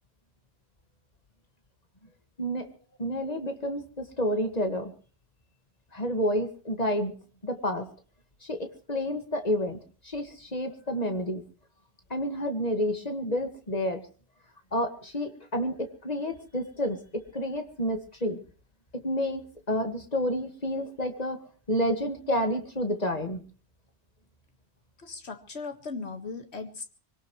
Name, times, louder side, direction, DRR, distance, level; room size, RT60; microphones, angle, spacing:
voice 1, 2.4-2.7 3.0-4.9 5.9-7.1 7.4-7.9 8.5-9.8 10.0-11.4 12.1-14.0 14.7-18.4 18.9-21.4 21.7-23.4, equal, 40° left, 6 dB, 2.0 m, -29 dB
voice 2, 25.0-26.9, left 4 dB, 85° left, 6 dB, 2.0 m, -38 dB
24.5 x 18.0 x 3.2 m, 0.42 s
omnidirectional pair, 1.1 m